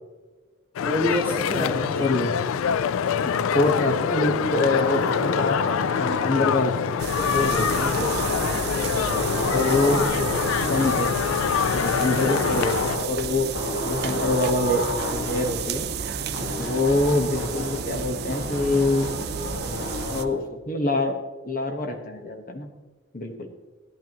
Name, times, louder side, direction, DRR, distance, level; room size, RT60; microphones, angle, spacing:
sound 1, 0.8-13.0, left 8 dB, 85° left, 0.3 m, -25 dB
voice 1, 0.8-2.1 8.7-10.7, left 1 dB, 10° left, -8 dB, 2.9 m, -30 dB
voice 2, 1.5-2.3 3.2-5.6 6.0-8.2 9.5-10.1 10.7-11.1 11.7-13.5 13.8-15.9 16.6-19.1 20.1-21.2 21.4-22.7 23.1-23.5, left 2 dB, 40° left, 4 dB, 1.3 m, -25 dB
sound 2, 2.5-4.1 4.5-6.5 7.2-8.8 9.1-11.1 11.6-13.2 13.5-15.5 16.3-17.9 18.3-20.3, left 2 dB, 70° left, 1.2 m, -31 dB
sound 3, 7.0-20.2, right 6 dB, 50° right, 0.6 m, -31 dB
16.5 x 10.0 x 3.0 m, 1.3 s
head